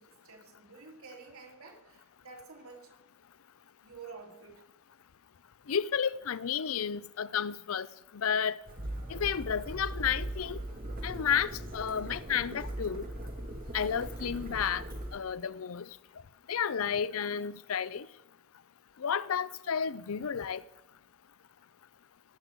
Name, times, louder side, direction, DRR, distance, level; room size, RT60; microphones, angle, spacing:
voice 1, 0.0-2.9 3.8-4.6, right 4 dB, 85° right, 3.4 m, -50 dB
voice 2, 5.7-7.9 8.1-8.6 9.1-10.6 11.0-13.1 13.7-14.8 15.1-15.9 16.5-18.1 19.0-20.6, left 7 dB, 75° left, 0.5 m, -31 dB
sound 1, 8.7-15.2, right 1 dB, 45° right, 2.3 m, -40 dB
18.0 x 6.2 x 8.2 m
head